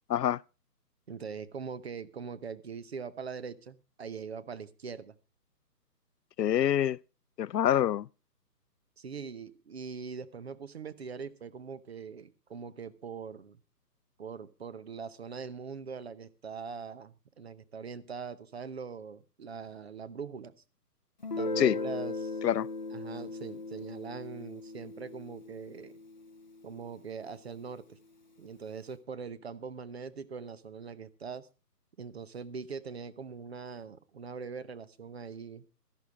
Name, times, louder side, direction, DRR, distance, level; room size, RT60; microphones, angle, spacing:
voice 1, 1.1-5.1 9.0-13.6 14.2-20.5 21.4-22.4 22.9-26.0 26.6-28.0 28.4-31.5 32.0-35.6, right 6 dB, 40° right, 1.0 m, -42 dB
voice 2, 6.4-7.0 7.4-8.1 21.6-21.8 22.4-22.7, left 11 dB, 80° left, 0.5 m, -26 dB
Guitar, 21.2-26.7, left 3 dB, 30° left, 0.6 m, -38 dB
13.0 x 11.5 x 4.7 m
hypercardioid pair, 160°, 48 cm